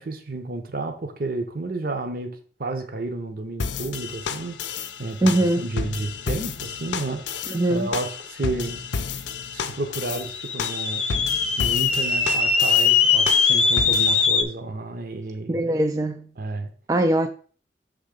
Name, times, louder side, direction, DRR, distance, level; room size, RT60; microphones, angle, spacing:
voice 1, 0.0-4.7 5.0-7.4 7.7-8.8 9.5-11.0 11.6-15.7 16.4-16.7, right 2 dB, 55° right, 0.8 m, -31 dB
sound 1, 3.6-14.3, left 5 dB, 85° left, 0.5 m, -32 dB
voice 2, 5.2-5.7 7.5-7.9 15.5-16.3 16.9-17.3, right 1 dB, 20° right, 0.3 m, -21 dB
sound 2, 10.2-14.4, left 5 dB, 40° left, 0.6 m, -21 dB
6.4 x 3.6 x 5.1 m
head